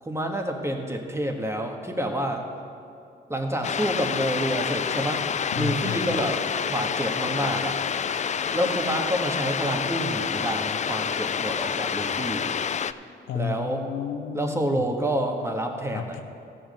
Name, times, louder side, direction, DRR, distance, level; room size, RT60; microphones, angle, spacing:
voice 1, 0.0-2.4 3.3-5.2 5.5-6.4 6.7-7.8 8.5-12.5 13.3-13.8 14.3-16.2, right 1 dB, 15° right, 2 dB, 1.6 m, -28 dB
sound 1, 3.6-12.9, left 7 dB, 35° left, 0.4 m, -28 dB
voice 2, 5.5-6.3 13.3-14.9 15.9-16.2, left 8 dB, 85° left, 7 dB, 0.7 m, -32 dB
14.0 x 5.4 x 6.6 m, 2.6 s
supercardioid pair, 50°, 20 cm